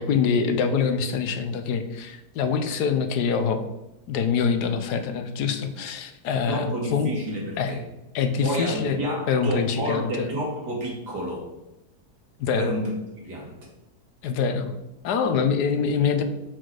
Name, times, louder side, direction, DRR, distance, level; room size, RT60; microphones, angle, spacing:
voice 1, 0.0-3.6 4.1-7.1 7.6-7.7 8.1-9.0 9.3-10.3 12.4-12.8 14.2-14.7 15.0-16.2, left 6 dB, 80° left, 8 dB, 1.4 m, -25 dB
voice 2, 6.3-7.8 8.4-11.5 12.6-13.0 13.2-13.6, right 1 dB, 85° right, -3 dB, 2.9 m, -30 dB
6.4 x 6.1 x 4.9 m, 0.96 s
omnidirectional pair, 1.7 m